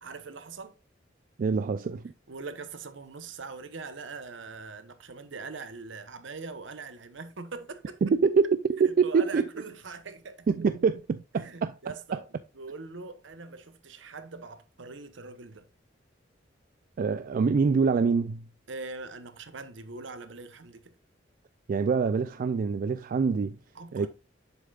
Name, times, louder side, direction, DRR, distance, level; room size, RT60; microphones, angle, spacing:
voice 1, 0.0-0.8 2.3-8.0 8.8-10.5 11.4-12.3 12.5-15.7 18.7-20.9 23.7-24.1, right 4 dB, 70° right, 0.9 m, -42 dB
voice 2, 1.4-2.1 8.0-9.4 10.5-11.7 17.0-18.5 21.7-23.6 23.9-24.1, right 5 dB, 45° right, 0.3 m, -25 dB
7.2 x 6.6 x 2.4 m
head